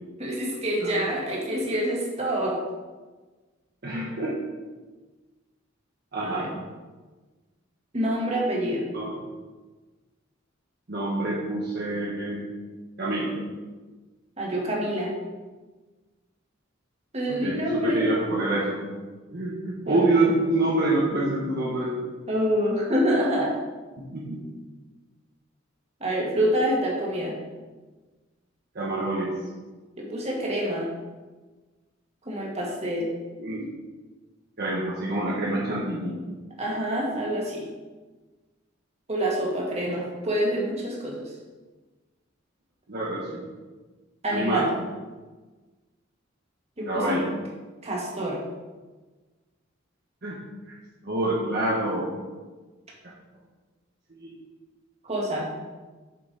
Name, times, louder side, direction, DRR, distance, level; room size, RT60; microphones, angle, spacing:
voice 1, 0.2-2.6 6.2-6.5 7.9-8.9 14.4-15.1 17.1-18.1 19.9-20.3 22.3-23.5 26.0-27.4 30.0-30.9 32.3-33.1 36.6-37.6 39.1-41.2 44.2-44.7 46.8-47.2 47.8-48.4 55.0-55.5, equal, 35° right, -3 dB, 1.8 m, -26 dB
voice 2, 3.8-4.4 6.1-6.4 8.9-9.2 10.9-12.4 13.0-13.3 17.3-18.8 19.3-22.0 24.1-24.4 28.7-29.3 33.4-33.6 34.6-36.1 39.8-40.1 42.9-43.4 44.3-44.6 46.9-47.3 50.2-50.4 51.0-52.1 54.1-54.3, right 2 dB, 55° right, -5 dB, 1.2 m, -26 dB
7.6 x 5.7 x 4.1 m, 1.3 s
head